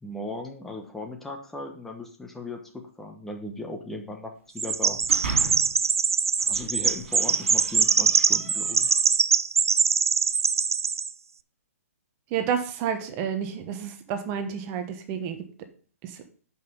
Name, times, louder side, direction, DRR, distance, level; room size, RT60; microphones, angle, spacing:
voice 1, 0.0-5.0 6.5-8.9, left 2 dB, 5° left, 2 dB, 1.1 m, -37 dB
Chirp tweet, 4.6-11.1, right 5 dB, 70° right, 0.5 m, -23 dB
sound 1, 4.7-5.8 6.3-9.1, right 3 dB, 50° right, 3.9 m, -39 dB
voice 2, 12.3-15.5 16.0-16.2, right 8 dB, 25° right, 8 dB, 1.1 m, -30 dB
11.0 x 5.6 x 5.4 m, 0.43 s
figure-of-eight pair, 130°, 8 cm